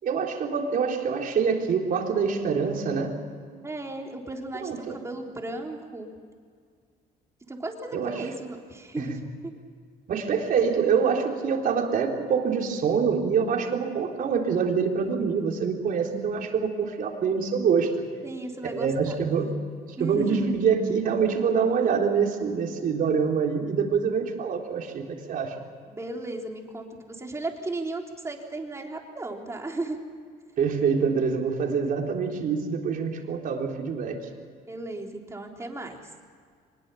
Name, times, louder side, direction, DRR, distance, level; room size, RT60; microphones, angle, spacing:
voice 1, 0.0-3.2 4.6-5.0 7.9-8.2 9.0-9.1 10.1-17.9 18.6-19.5 20.0-25.6 30.6-34.3, right 6 dB, 55° right, 2 dB, 3.9 m, -25 dB
voice 2, 3.6-6.1 7.5-9.5 18.2-19.1 20.0-20.5 25.9-30.0 34.7-36.0, right 2 dB, 15° right, 1 dB, 3.6 m, -35 dB
23.5 x 21.0 x 7.1 m, 2.1 s
cardioid pair, 110°, 17 cm